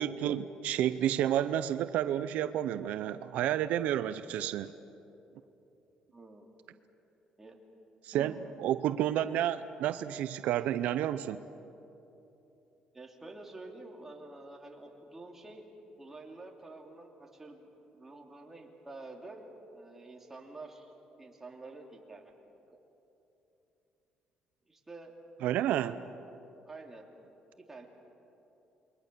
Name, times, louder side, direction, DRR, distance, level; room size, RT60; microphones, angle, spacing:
voice 1, 0.0-4.7 8.0-11.4 25.4-26.0, right 11 dB, 80° right, 12 dB, 0.6 m, -30 dB
voice 2, 6.1-6.5 7.4-7.6 8.1-8.5 12.9-15.7 16.0-20.9 21.2-22.3 22.7-22.8 24.7-25.1 25.8-26.0 26.6-27.0 27.6-27.9, right 2 dB, 15° right, 0 dB, 2.9 m, -48 dB
28.0 x 22.5 x 6.8 m, 3.0 s
cardioid pair, 135°, 2 cm